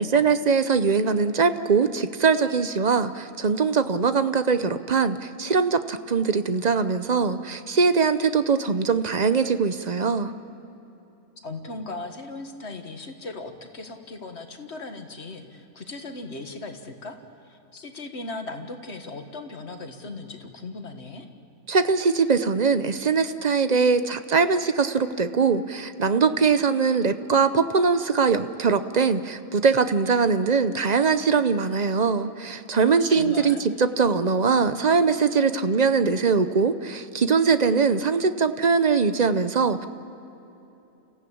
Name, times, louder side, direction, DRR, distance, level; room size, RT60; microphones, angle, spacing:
voice 1, 0.1-10.3 21.7-39.9, right 5 dB, 45° right, 11 dB, 0.5 m, -22 dB
voice 2, 11.4-21.3 32.8-33.6, left 3 dB, 45° left, 5 dB, 1.8 m, -38 dB
29.0 x 15.5 x 8.6 m, 3.0 s
omnidirectional pair, 1.6 m